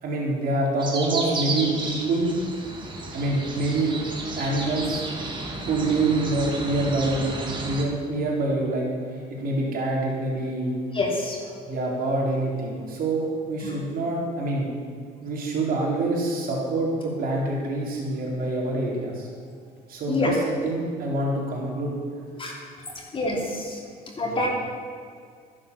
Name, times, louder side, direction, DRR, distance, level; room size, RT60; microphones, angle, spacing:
voice 1, 0.0-2.3 3.1-3.9 4.4-5.0 5.6-7.3 7.6-8.9 9.1-10.8 11.7-14.7 15.2-19.3 19.9-21.9 24.2-24.4, right 2 dB, 60° right, -3 dB, 4.2 m, -26 dB
sound 1, 0.8-7.8, right 2 dB, 30° right, 2.3 m, -33 dB
voice 2, 10.9-11.4 13.6-13.7 20.1-20.3 22.4-22.5 23.1-23.8 24.2-24.5, left 2 dB, 30° left, -2 dB, 2.8 m, -26 dB
12.5 x 11.0 x 7.0 m, 2.1 s
cardioid pair, 110°, 17 cm